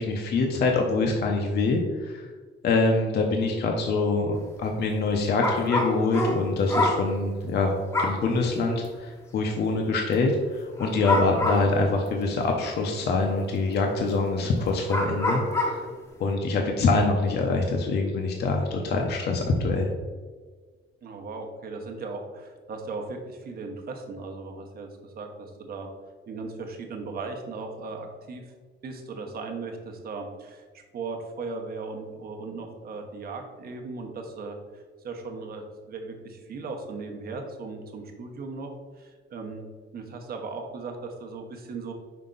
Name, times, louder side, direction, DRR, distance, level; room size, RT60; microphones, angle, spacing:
voice 1, 0.0-2.3 2.6-15.8 16.2-19.9, left 3 dB, 55° left, 2 dB, 0.7 m, -25 dB
sound 1, 5.4-7.1 7.9-8.3 8.8-8.9 10.8-11.8 12.4-12.5 14.2-14.3 14.9-15.9, left 2 dB, 15° left, 0.7 m, -26 dB
voice 2, 21.0-25.9 26.3-28.4 28.8-38.7 39.0-39.7 39.9-41.9, right 3 dB, 50° right, 3 dB, 0.9 m, -37 dB
5.7 x 4.4 x 3.8 m, 1.5 s
cardioid pair, 175°, 21 cm